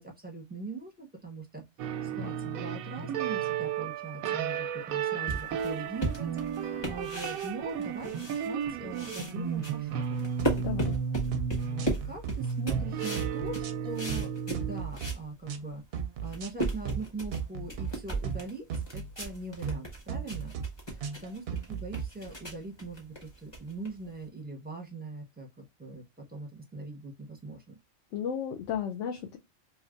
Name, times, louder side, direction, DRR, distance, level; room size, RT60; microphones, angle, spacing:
voice 1, 0.0-1.6 2.0-10.3 11.6-15.8 16.2-18.6 18.9-20.6 21.2-27.7, right 3 dB, 10° right, 0.7 m, -41 dB
sound 1, 1.8-14.8, right 7 dB, 90° right, 1.0 m, -33 dB
sound 2, 5.3-8.7 8.9-15.2 15.7-15.8 16.1-24.2, right 2 dB, 20° left, 1.1 m, -36 dB
sound 3, 10.4-11.0 11.3-11.5 11.8-12.3 12.7-12.9 13.2-14.3 14.5-15.1 15.5-15.6 15.9-16.5 16.8-17.0 17.3-17.9 18.2-18.4 18.7-19.3 19.6-19.8 20.1-20.7 21.0-22.0, right 7 dB, 60° right, 0.7 m, -35 dB
voice 2, 10.6-11.0 28.1-29.4, left 8 dB, 70° left, 0.8 m, -34 dB
3.2 x 2.8 x 2.4 m
omnidirectional pair, 1.4 m